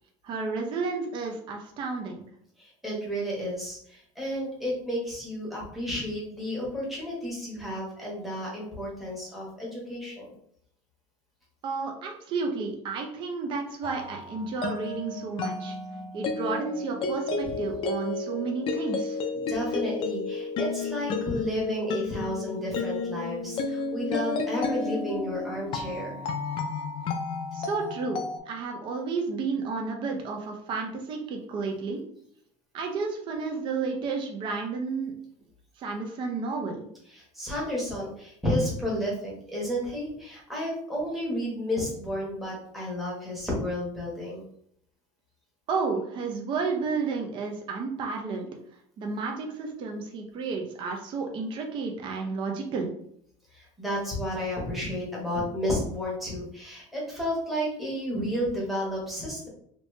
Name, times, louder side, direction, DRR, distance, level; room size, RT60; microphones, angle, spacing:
voice 1, 0.2-2.2 11.6-15.8 16.1-19.5 27.5-32.0 32.7-35.1 35.8-36.9 45.7-48.5 49.0-52.9, right 4 dB, 35° right, 2 dB, 0.5 m, -32 dB
voice 2, 2.6-10.3 17.4-17.5 19.4-26.2 37.1-44.4 53.5-59.5, equal, ahead, -5 dB, 1.1 m, -32 dB
sound 1, 13.8-28.4, left 4 dB, 35° left, 0.4 m, -32 dB
3.0 x 2.8 x 3.2 m, 0.68 s
cardioid pair, 160°, 15 cm